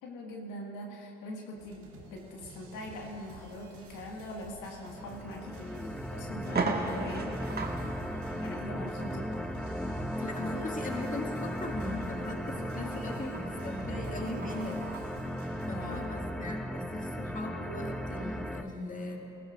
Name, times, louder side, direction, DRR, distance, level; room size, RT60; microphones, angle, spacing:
voice 1, 0.0-7.4 8.4-9.3 15.7-16.1, left 1 dB, 70° left, -1 dB, 1.9 m, -42 dB
sound 1, 1.6-16.1, right 3 dB, 85° right, 2.6 m, -51 dB
sound 2, 4.9-18.6, equal, ahead, 0.8 m, -36 dB
sound 3, 5.5-5.6 6.0-6.1 6.4-15.1, right 3 dB, 30° right, 1.6 m, -40 dB
voice 2, 10.2-15.0 15.2-15.4 15.7-19.2, left 2 dB, 25° left, 0 dB, 2.1 m, -39 dB
19.5 x 16.5 x 2.5 m, 2.9 s
hypercardioid pair, 60°, 32 cm